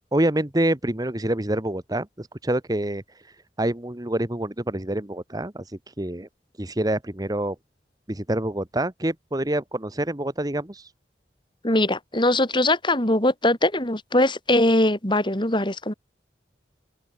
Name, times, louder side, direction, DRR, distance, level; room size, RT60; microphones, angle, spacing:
voice 1, 0.1-3.0 3.6-6.3 6.6-7.5 8.1-10.9, right 1 dB, 20° right, 1.5 m, -26 dB
voice 2, 11.6-15.9, left 1 dB, 30° left, 4.3 m, -21 dB
head